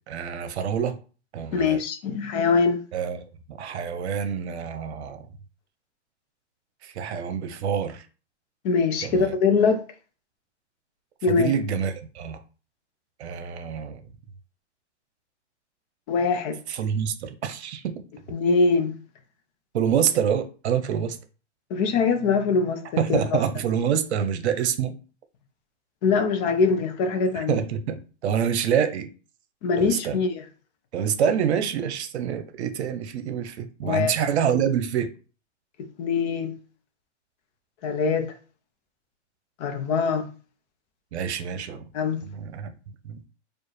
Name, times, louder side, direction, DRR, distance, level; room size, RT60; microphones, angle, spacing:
voice 1, 0.1-1.0 1.3-1.8 2.9-5.3 6.8-8.0 9.0-9.3 11.3-12.4 13.2-14.0 16.7-17.9 19.7-21.2 23.0-24.9 27.3-29.1 29.8-30.2 30.9-35.1 41.1-41.8 42.2-42.7 43.0-43.2, right 8 dB, 65° right, 0.8 m, -26 dB
voice 2, 1.5-2.8 8.6-9.8 11.2-11.5 16.1-16.6 18.3-19.0 21.7-23.2 26.0-27.6 29.6-30.4 33.8-34.1 35.8-36.6 37.8-38.3 39.6-40.3 41.9-42.2, left 4 dB, 35° left, 0.7 m, -23 dB
4.5 x 2.4 x 3.2 m
hypercardioid pair, 130°, 36 cm